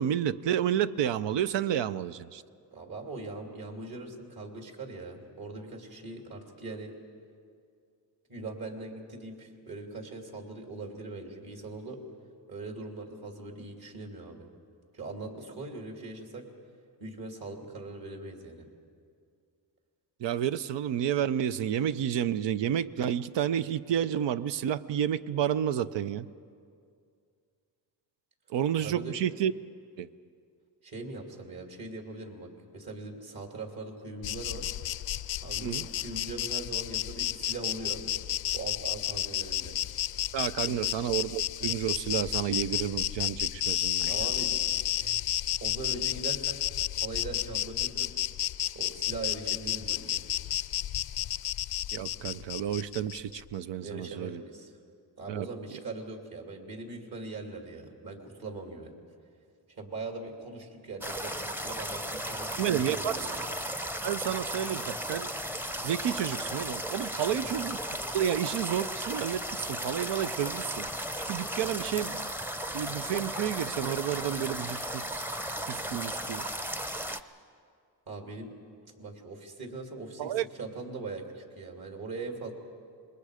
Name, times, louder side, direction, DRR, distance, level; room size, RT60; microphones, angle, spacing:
voice 1, 0.0-2.4 20.2-26.3 28.5-29.5 30.0-30.1 35.6-35.9 40.3-44.2 51.9-54.4 55.3-55.5 62.6-63.3 64.0-65.3 65.8-67.8 68.1-70.9 71.3-72.3 72.7-75.2 75.7-76.4 80.2-80.4, right 10 dB, 85° right, 13 dB, 0.6 m, -30 dB
voice 2, 2.7-7.0 8.3-12.0 12.5-14.5 14.9-16.4 17.0-18.7 28.8-29.2 30.8-34.7 35.4-38.0 38.5-39.8 40.7-40.9 44.1-44.6 45.0-45.2 45.6-46.6 46.9-48.1 48.7-50.2 53.8-54.7 55.2-58.9 59.8-63.4 67.2-67.3 78.1-78.5 79.0-82.5, right 3 dB, 55° right, 2 dB, 3.0 m, -41 dB
Insect, 34.2-53.4, left 13 dB, 60° left, 0.5 m, -32 dB
sound 1, 61.0-77.2, equal, 5° right, 0.7 m, -35 dB
26.5 x 21.0 x 5.0 m, 2.3 s
cardioid pair, 85°, 42 cm